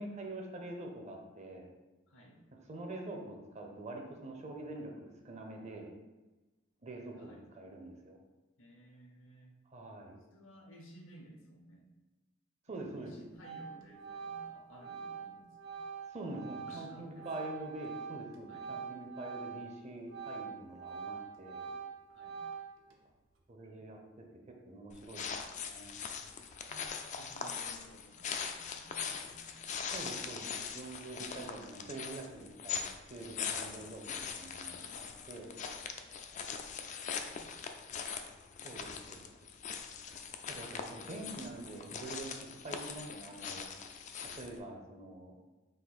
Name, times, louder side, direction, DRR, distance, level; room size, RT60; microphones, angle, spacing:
voice 1, 0.0-1.7 2.5-5.9 6.8-8.2 9.7-10.2 12.7-13.1 16.1-21.7 23.5-25.3 25.6-26.0 29.9-34.8 35.3-35.5 38.6-39.3 40.5-43.7 44.3-45.4, right 2 dB, 35° right, 2 dB, 0.6 m, -45 dB
voice 2, 2.1-2.4 7.1-7.5 8.6-9.6 10.3-11.9 12.7-15.8 16.6-17.5 18.5-18.7 22.1-22.5 26.1-29.9 33.5-33.8 34.7-35.5 35.8-37.7 39.9-41.0 41.6-41.9, equal, 75° left, 0 dB, 0.8 m, -58 dB
Organ, 12.8-13.1 13.4-19.7 20.0-22.9, right 6 dB, 75° right, 0.6 m, -44 dB
sound 1, 24.9-44.6, left 6 dB, 40° left, 0.3 m, -42 dB
3.7 x 2.5 x 4.1 m, 1.1 s
head